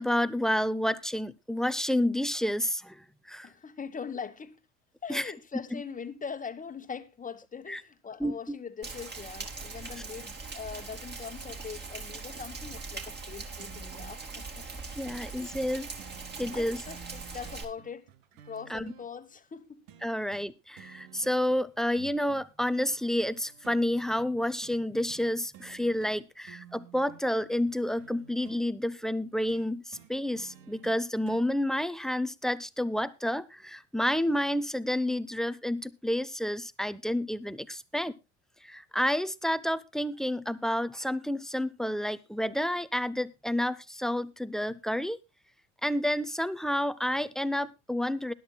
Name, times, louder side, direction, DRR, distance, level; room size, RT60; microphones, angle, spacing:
voice 1, 0.0-3.5 5.1-5.3 7.7-7.8 8.2-8.6 15.0-15.9 16.4-16.8 18.7-18.9 20.0-38.1 38.6-45.2 45.8-48.3, left 1 dB, ahead, 0.7 m, -30 dB
voice 2, 3.4-4.6 5.0-14.7 15.0-15.4 16.5-18.1 18.5-19.8, left 6 dB, 20° left, 1.3 m, -42 dB
Rain, 8.8-17.6, right 4 dB, 25° right, 2.9 m, -41 dB
sound 1, 13.6-14.2 15.1-15.2 15.5-15.7 16.0-19.1 19.9-20.5 20.8-21.6 22.0-23.8 24.6-24.8 25.1-25.3 25.5-26.2 26.4-28.6 29.5-31.5 32.5-32.6, right 10 dB, 75° right, 1.5 m, -52 dB
21.0 x 11.0 x 2.2 m
supercardioid pair, 90°, 37 cm